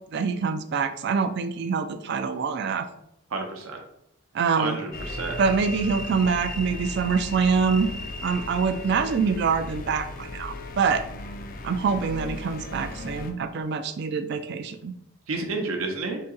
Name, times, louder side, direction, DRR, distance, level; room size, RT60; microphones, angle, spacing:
voice 1, 0.1-2.9 4.3-4.8 5.4-7.9 8.2-11.0 11.6-14.9, right 5 dB, 50° right, 10 dB, 0.3 m, -25 dB
voice 2, 3.3-3.8 4.4-5.3 15.3-16.2, right 3 dB, 80° right, 2 dB, 0.7 m, -30 dB
sound 1, 4.9-13.3, left 2 dB, 40° left, 0.4 m, -36 dB
3.8 x 2.8 x 3.8 m, 0.79 s
head